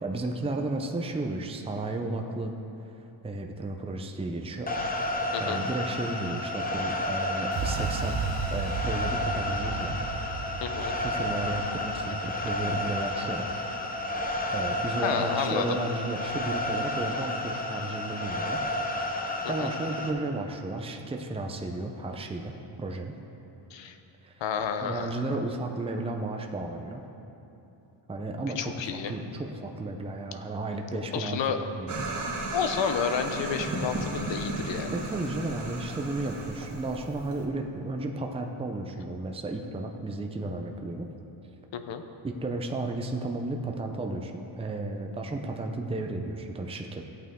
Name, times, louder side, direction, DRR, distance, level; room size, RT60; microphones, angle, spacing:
voice 1, 0.0-2.5 2.9-3.0 3.2-4.7 5.4-8.2 8.5-10.1 10.9-13.5 14.5-18.7 19.5-23.2 24.2-24.3 24.8-27.0 28.1-31.4 31.8-32.1 34.9-41.1 42.2-47.1, right 2 dB, 10° right, 3 dB, 0.6 m, -33 dB
sound 1, 4.7-20.1, left 1 dB, 20° left, 1.0 m, -31 dB
sound 2, 7.5-15.4, right 5 dB, 65° right, 0.9 m, -36 dB
voice 2, 10.6-10.9 15.0-15.7 19.4-19.7 23.7-23.9 24.4-25.1 28.6-29.1 30.9-31.6 32.5-34.9 41.7-42.0, left 7 dB, 65° left, 7 dB, 0.8 m, -30 dB
sound 3, 31.9-37.5, right 2 dB, 35° right, 1.7 m, -35 dB
14.5 x 8.6 x 3.7 m, 3.0 s
cardioid pair, 105°, 47 cm